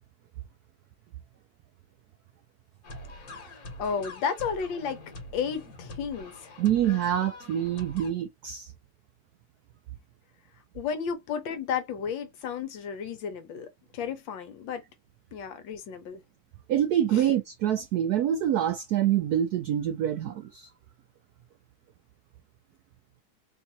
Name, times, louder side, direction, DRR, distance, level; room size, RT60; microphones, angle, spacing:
sound 1, 2.8-8.1, left 2 dB, 50° left, 1.5 m, -44 dB
voice 1, 3.3-5.0 5.3-6.5 10.7-14.8 15.3-16.2 17.1-17.3, left 6 dB, 70° left, 1.5 m, -33 dB
voice 2, 6.6-8.7 16.7-20.7, right 10 dB, 85° right, 0.8 m, -26 dB
3.6 x 2.6 x 2.7 m
omnidirectional pair, 2.2 m